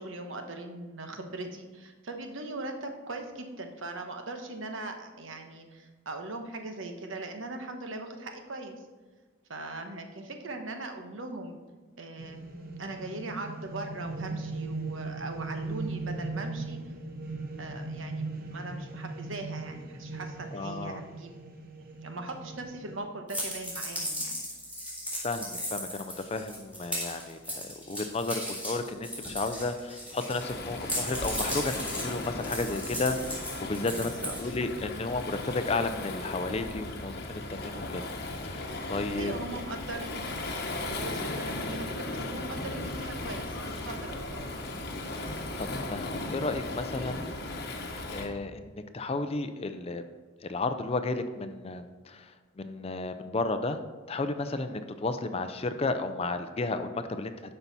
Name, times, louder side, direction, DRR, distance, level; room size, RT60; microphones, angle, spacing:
voice 1, 0.0-8.7 9.5-11.6 12.0-12.4 12.8-16.9 17.6-21.3 22.0-24.3 33.9-34.3 39.2-44.5, right 2 dB, 70° right, 5 dB, 1.1 m, -40 dB
sound 1, 12.2-23.0, right 3 dB, 45° right, 1.0 m, -38 dB
voice 2, 20.5-21.0 25.1-34.1 34.4-38.0 38.4-39.3 45.6-47.2 48.1-50.1 50.4-53.8 54.1-57.4, left 3 dB, 30° left, 9 dB, 0.5 m, -33 dB
sound 2, 23.3-30.5 30.8-34.8, equal, 5° right, 2.9 m, -36 dB
Waves surf, 30.4-48.3, left 2 dB, 50° left, 1.0 m, -37 dB
11.5 x 5.6 x 4.1 m, 1.4 s
head